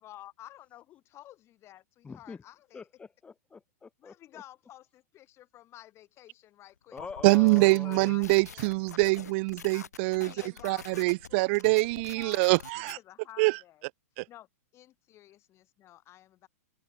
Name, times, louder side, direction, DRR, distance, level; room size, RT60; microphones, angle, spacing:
voice 1, 0.0-2.9 4.0-7.5 7.8-8.7 10.2-11.6 12.1-12.5 12.9-13.8 14.3-14.5 14.7-16.5, left 14 dB, 30° left, 3.6 m, -52 dB
voice 2, 2.0-2.4 2.7-4.4 6.9-8.2, left 5 dB, 15° left, 2.9 m, -44 dB
sound 1, 7.0-12.9, left 7 dB, 90° left, 1.9 m, -46 dB
voice 3, 7.2-10.3 10.6-13.0 13.4-13.6 14.2-14.3, right 27 dB, 50° right, 1.2 m, -24 dB
hypercardioid pair, 120°, 9 cm